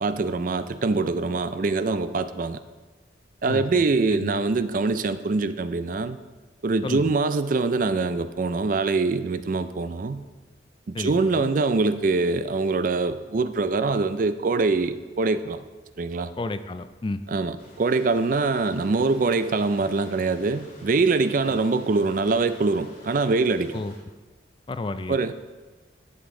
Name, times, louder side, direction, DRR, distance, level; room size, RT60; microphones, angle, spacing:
voice 1, 0.0-2.6 3.4-6.2 6.6-10.2 10.9-15.6 16.0-16.3 17.3-23.7 25.1-25.3, right 3 dB, 45° right, 12 dB, 0.4 m, -24 dB
voice 2, 3.5-3.8 4.1-4.4 6.8-7.1 10.9-11.5 16.4-17.2 23.7-23.9 24.7-25.3, left 2 dB, 25° left, 11 dB, 0.3 m, -32 dB
sound 1, 17.6-24.0, left 1 dB, 50° left, 2.8 m, -50 dB
11.0 x 7.1 x 3.7 m, 1.3 s
head